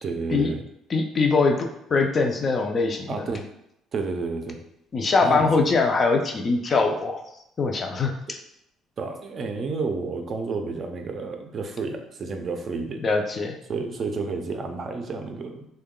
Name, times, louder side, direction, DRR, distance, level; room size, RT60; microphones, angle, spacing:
voice 1, 0.0-0.6 3.1-3.5 3.9-4.6 5.2-5.5 9.0-13.1 13.7-15.7, right 4 dB, 35° right, 5 dB, 0.5 m, -30 dB
voice 2, 0.9-3.2 4.9-7.2 7.6-8.4 13.0-13.6, left 4 dB, 30° left, 4 dB, 0.4 m, -22 dB
3.6 x 2.2 x 3.6 m, 0.79 s
cardioid pair, 135°, 0 cm